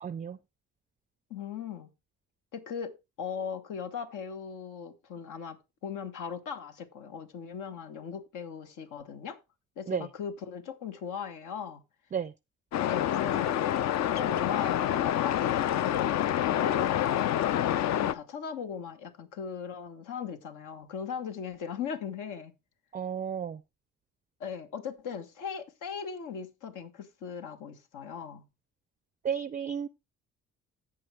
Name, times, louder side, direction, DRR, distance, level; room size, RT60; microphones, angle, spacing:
voice 1, 0.0-0.4 9.9-10.1 12.1-12.3 22.9-23.6 29.2-29.9, right 8 dB, 25° right, 0.4 m, -32 dB
voice 2, 1.3-1.9 2.5-9.4 9.8-11.8 12.9-16.1 16.5-17.0 17.5-22.5 24.4-28.5, left 7 dB, 85° left, 1.5 m, -39 dB
sound 1, 12.7-18.1, left 11 dB, 65° left, 0.6 m, -27 dB
16.0 x 5.3 x 3.3 m
cardioid pair, 90°, 30 cm